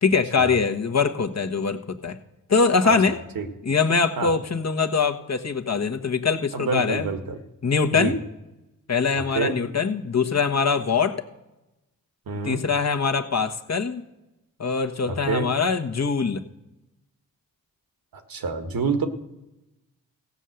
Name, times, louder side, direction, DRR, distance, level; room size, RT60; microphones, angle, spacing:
voice 1, 0.0-2.2 2.5-3.2 3.6-7.1 7.6-8.2 8.9-11.2 12.4-14.0 14.6-16.4, left 5 dB, 45° left, 6 dB, 1.4 m, -23 dB
voice 2, 2.8-3.5 4.2-4.3 6.5-7.4 7.9-8.2 9.1-9.6 12.3-12.6 15.0-15.5 18.1-19.1, right 4 dB, 70° right, 7 dB, 1.7 m, -28 dB
15.5 x 5.6 x 7.9 m, 0.98 s
supercardioid pair, 40°, 36 cm